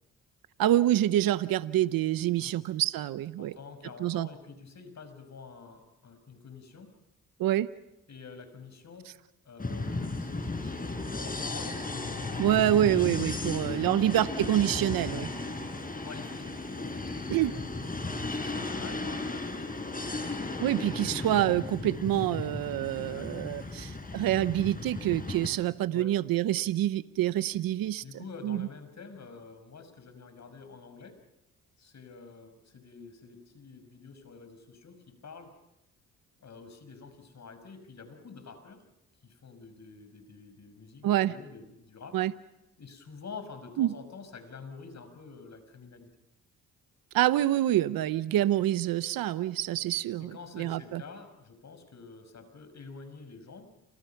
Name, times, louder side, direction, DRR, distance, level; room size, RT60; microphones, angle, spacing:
voice 1, 0.6-3.5 4.0-4.3 7.4-7.7 12.4-15.3 17.3-17.5 20.6-28.0 28.4-28.7 41.0-41.3 42.1-42.3 43.8-43.9 47.1-51.0, right 13 dB, 80° right, 14 dB, 0.9 m, -27 dB
voice 2, 3.4-6.9 8.1-9.1 9.4-12.5 13.3-14.1 16.0-17.6 18.2-20.0 22.9-23.8 25.9-26.1 28.0-31.2 31.8-35.5 36.4-38.8 39.2-42.2 42.8-46.1 50.2-53.7, left 4 dB, 50° left, 9 dB, 6.0 m, -48 dB
sound 1, 9.6-25.5, left 2 dB, 25° left, 5.7 m, -35 dB
29.5 x 26.5 x 5.9 m, 0.90 s
cardioid pair, 65°, 34 cm